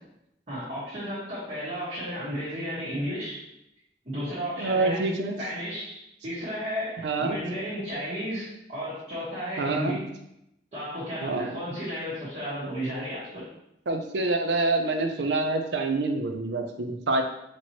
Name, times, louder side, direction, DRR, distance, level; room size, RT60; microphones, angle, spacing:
voice 1, 0.5-3.3 4.0-5.1 5.4-10.0 10.7-13.4, equal, 40° right, -12 dB, 1.4 m, -33 dB
voice 2, 4.6-5.4 7.0-7.4 9.6-10.1 11.2-11.6 13.9-17.2, right 2 dB, 75° right, 5 dB, 0.5 m, -26 dB
4.5 x 2.9 x 2.9 m, 0.81 s
head